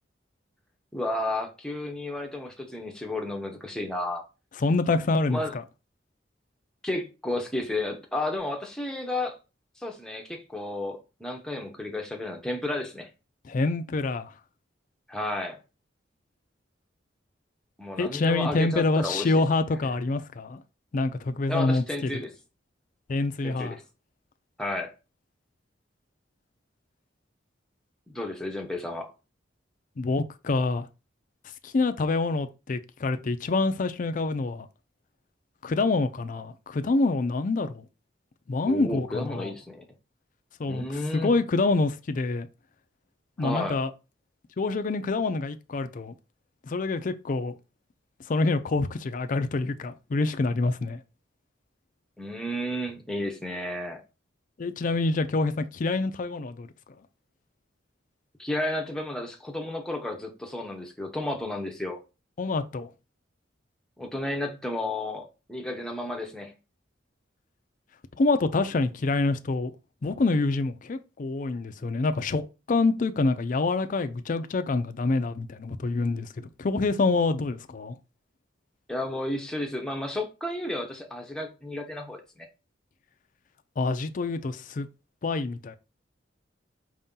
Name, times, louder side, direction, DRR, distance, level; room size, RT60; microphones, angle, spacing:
voice 1, 0.9-4.2 5.3-5.5 6.8-9.4 9.8-13.1 15.1-15.6 17.8-19.4 21.5-22.3 23.4-23.8 24.6-24.9 28.1-29.1 38.6-39.8 40.7-41.3 43.4-43.8 52.2-54.0 58.4-62.0 64.0-66.5 78.9-82.5, left 1 dB, 5° left, 0.8 m, -32 dB
voice 2, 4.6-5.6 13.4-14.3 18.0-20.6 20.9-22.1 23.1-23.8 30.0-30.9 31.6-34.7 35.6-37.9 38.5-39.5 40.6-40.9 41.1-42.5 43.4-43.9 44.6-46.1 46.7-47.6 48.3-51.0 54.6-56.7 62.4-62.9 68.2-69.7 70.0-72.4 72.7-77.9 83.8-84.9 85.2-85.8, left 3 dB, 45° left, 0.4 m, -26 dB
4.8 x 2.7 x 3.6 m
head